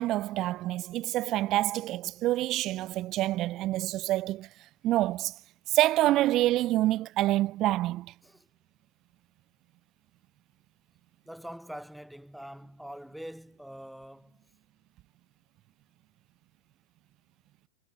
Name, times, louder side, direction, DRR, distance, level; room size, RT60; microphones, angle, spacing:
voice 1, 0.0-4.5 4.8-5.3 5.7-8.1, right 15 dB, 35° right, 0.3 m, -27 dB
voice 2, 11.3-14.4, equal, ahead, 2.0 m, -44 dB
figure-of-eight pair, 90°, 0 cm